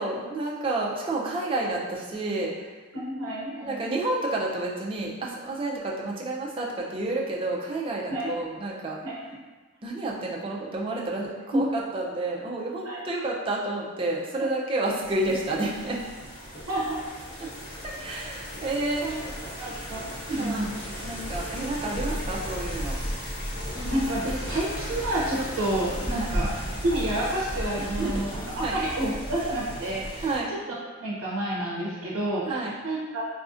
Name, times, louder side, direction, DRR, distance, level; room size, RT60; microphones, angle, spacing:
voice 1, 0.0-2.7 3.6-9.0 9.8-16.0 17.4-17.5 17.8-19.4 20.3-20.7 21.0-23.0 26.1-26.3 27.8-28.2 28.6-28.8 30.2-30.5 32.4-32.7, right 2 dB, 25° right, -3 dB, 0.4 m, -30 dB
voice 2, 2.9-3.9 8.1-8.3 9.0-9.1 11.5-11.6 12.8-13.0 16.7-17.0 19.0-19.2 19.6-20.7 23.7-26.5 26.8-30.6 31.0-33.2, right 1 dB, 75° right, -5 dB, 0.6 m, -29 dB
sound 1, 15.0-30.4, equal, 45° left, 0.8 m, -35 dB
4.1 x 2.5 x 2.4 m, 1.3 s
head